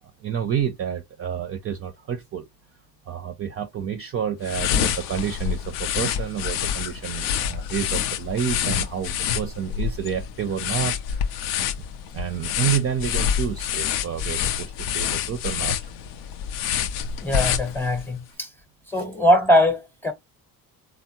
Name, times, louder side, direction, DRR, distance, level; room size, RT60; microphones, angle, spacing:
voice 1, 0.2-2.5 3.1-11.5 12.1-15.9 18.3-18.4 18.9-19.0, right 8 dB, 30° right, 0.4 m, -29 dB
sound 1, 4.4-18.1, left 9 dB, 70° left, 0.5 m, -27 dB
voice 2, 17.2-18.5 18.9-20.1, left 1 dB, 5° left, 0.8 m, -21 dB
3.5 x 2.0 x 2.7 m
hypercardioid pair, 60°, 46 cm